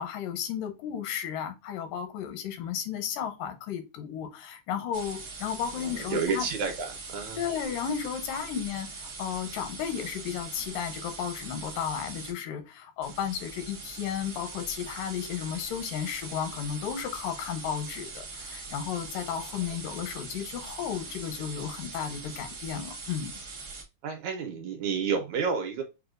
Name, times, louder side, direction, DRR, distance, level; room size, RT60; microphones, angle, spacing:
voice 1, 0.0-6.5 7.4-23.3, left 8 dB, 90° left, 2.4 m, -34 dB
sound 1, 4.9-12.3 13.0-23.8, right 4 dB, 60° right, 1.0 m, -42 dB
voice 2, 5.7-7.4 19.5-19.7 24.0-25.8, right 5 dB, 75° right, 1.8 m, -31 dB
6.6 x 2.2 x 2.4 m
omnidirectional pair, 3.8 m